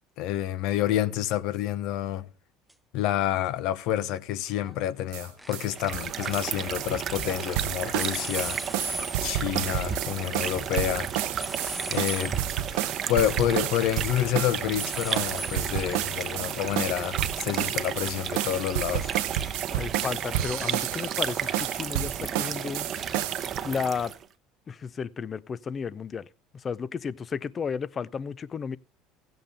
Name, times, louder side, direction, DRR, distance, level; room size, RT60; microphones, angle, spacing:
voice 1, 0.2-2.3 2.9-8.9 9.2-11.3 11.9-12.3 12.7-19.1, left 12 dB, 70° left, 0.9 m, -28 dB
sound 1, 2.7-2.8 4.5-4.8 5.1-7.5 7.9-19.7, right 1 dB, 5° right, 0.6 m, -42 dB
sound 2, 5.1-5.3 5.5-5.7 5.9-6.1 6.3-23.6, right 13 dB, 75° right, 0.7 m, -31 dB
sound 3, 5.6-24.3, right 8 dB, 45° right, 0.9 m, -33 dB
voice 2, 19.7-22.9 23.6-24.1 24.7-26.3 26.5-28.8, left 6 dB, 35° left, 0.6 m, -33 dB
16.0 x 7.9 x 3.4 m
hypercardioid pair, 80°, 0 cm